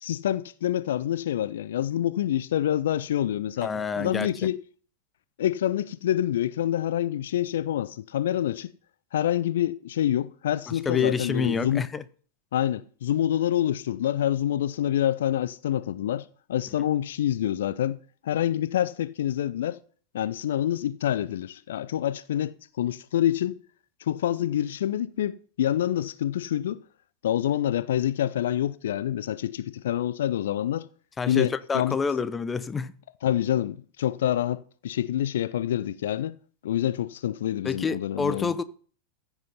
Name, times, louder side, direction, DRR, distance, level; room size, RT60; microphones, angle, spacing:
voice 1, 0.0-4.6 5.4-8.7 9.1-11.8 12.5-18.0 18.2-19.8 20.1-23.6 24.0-26.8 27.2-30.9 31.3-32.0 33.2-36.4 36.6-38.5, left 11 dB, 60° left, 0.5 m, -27 dB
voice 2, 3.6-4.3 10.7-12.0 31.2-32.9 37.6-38.6, left 5 dB, 15° left, 0.8 m, -28 dB
14.5 x 8.1 x 5.6 m
figure-of-eight pair, 90°, 0 cm